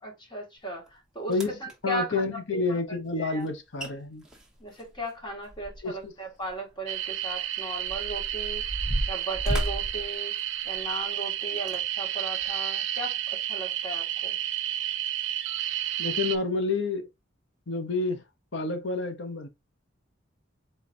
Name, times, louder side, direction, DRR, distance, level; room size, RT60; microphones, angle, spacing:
voice 1, 0.0-2.4 2.7-2.8 3.2-3.4 4.6-8.7 9.1-10.3 10.7-14.4, right 1 dB, 25° left, 1.8 m, -37 dB
sound 1, 0.9-1.0 1.3-1.7 3.5-3.6 3.8-3.9 4.2-6.0 6.4-6.5 7.2-11.0 11.6-11.8 12.4-12.5, right 1 dB, 5° right, 0.9 m, -33 dB
voice 2, 1.8-4.2 5.8-6.1 16.0-17.1 17.7-18.2 18.5-19.5, left 3 dB, 65° left, 0.9 m, -29 dB
sound 2, 6.9-16.4, right 12 dB, 70° right, 0.5 m, -31 dB
4.2 x 3.8 x 2.7 m
head